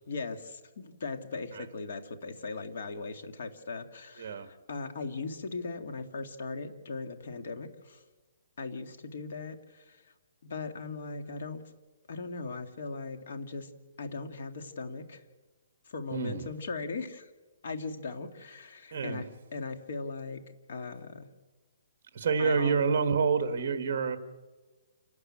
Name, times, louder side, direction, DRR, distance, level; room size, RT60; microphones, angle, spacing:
voice 1, 0.1-8.0 8.6-10.0 10.4-11.6 12.1-13.7 14.0-15.2 15.9-17.3 17.6-20.4 20.7-21.3 22.4-22.8, left 4 dB, 55° left, 7 dB, 2.2 m, -39 dB
voice 2, 16.1-16.4 18.9-19.3 22.1-24.2, right 5 dB, 40° right, 9 dB, 1.6 m, -28 dB
28.5 x 13.0 x 8.8 m, 1.3 s
hypercardioid pair, 170°, 0 cm